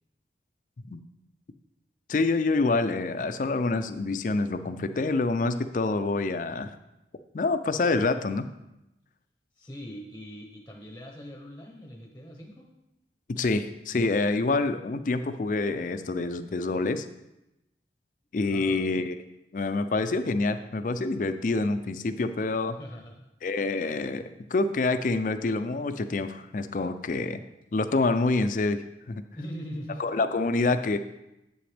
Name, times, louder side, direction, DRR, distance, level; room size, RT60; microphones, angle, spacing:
voice 1, 2.1-6.7 7.3-8.5 13.3-17.1 18.3-19.2 19.5-22.8 23.4-27.4 27.7-28.8 29.1-29.2 30.0-31.0, left 3 dB, 45° left, 10 dB, 0.4 m, -27 dB
voice 2, 9.6-12.7 18.4-19.0 22.8-23.3 29.3-30.0, equal, 10° left, 1 dB, 0.8 m, -41 dB
7.8 x 7.7 x 3.4 m, 0.92 s
head